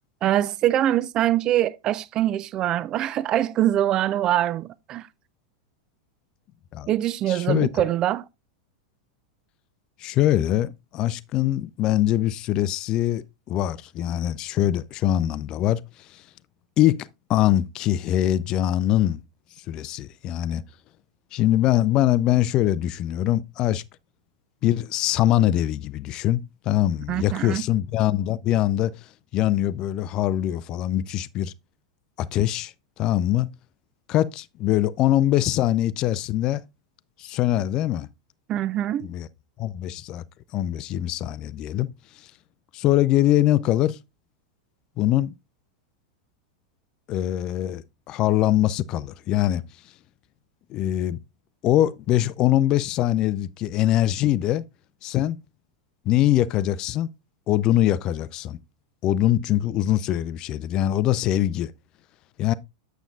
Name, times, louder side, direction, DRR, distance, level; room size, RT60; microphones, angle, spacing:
voice 1, 0.2-5.1 6.9-8.3 27.1-27.6 38.5-39.1, right 12 dB, 35° right, 0.4 m, -23 dB
voice 2, 7.3-7.9 10.0-15.8 16.1-16.2 16.8-19.2 19.7-20.6 21.3-23.8 24.6-28.9 29.3-31.5 32.2-33.5 34.1-36.6 37.2-38.1 39.0-39.3 39.6-40.2 40.5-41.9 42.7-44.0 45.0-45.4 47.1-49.6 50.7-51.2 51.6-54.6 55.0-55.4 56.1-57.1 57.5-58.6 59.0-61.7 62.4-62.5, left 13 dB, 35° left, 0.4 m, -23 dB
8.8 x 6.9 x 2.4 m
figure-of-eight pair, 90°, 2 cm